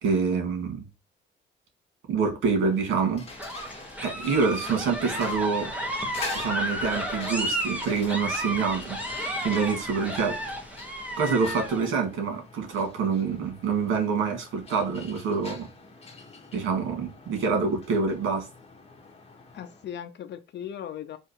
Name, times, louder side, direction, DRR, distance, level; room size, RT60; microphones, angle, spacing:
voice 1, 0.0-0.9 2.1-3.3 4.0-5.7 6.3-9.0 9.4-10.4 11.2-15.7 16.5-18.5, right 5 dB, 85° right, 1.8 m, -26 dB
sound 1, 2.5-19.9, left 3 dB, 30° left, 1.4 m, -45 dB
sound 2, 3.3-11.9, equal, 5° right, 1.4 m, -32 dB
voice 2, 19.5-21.2, left 9 dB, 60° left, 0.6 m, -38 dB
3.8 x 2.9 x 4.6 m
cardioid pair, 90°, 20 cm